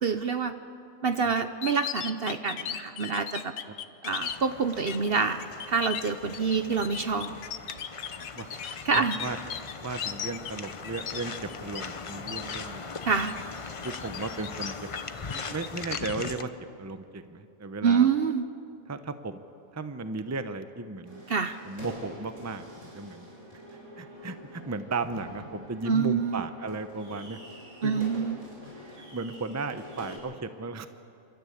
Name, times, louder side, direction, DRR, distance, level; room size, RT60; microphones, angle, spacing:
voice 1, 0.0-0.5 1.0-3.5 4.0-7.4 8.8-9.2 13.1-13.4 17.8-18.4 21.3-21.6 25.9-26.4 27.8-28.4, right 5 dB, 50° right, 9 dB, 0.9 m, -26 dB
sound 1, 1.4-4.4 4.9-5.1 5.4-11.8 12.1-12.6 13.0-13.4 13.8-15.0 15.3-16.3, left 9 dB, 80° left, 1.2 m, -37 dB
sound 2, 4.2-16.4, left 4 dB, 30° left, 0.6 m, -40 dB
voice 2, 8.9-9.4 9.8-13.0 13.8-14.7 15.3-16.5 16.8-18.1 18.9-19.4 19.7-21.2 21.6-22.7 22.9-23.3 23.7-27.4 27.8-28.0 29.1-30.9, right 3 dB, 15° right, 9 dB, 0.7 m, -35 dB
sound 3, 21.0-30.2, left 1 dB, 80° right, 5.3 m, -45 dB
28.5 x 13.0 x 8.6 m, 2.5 s
omnidirectional pair, 1.4 m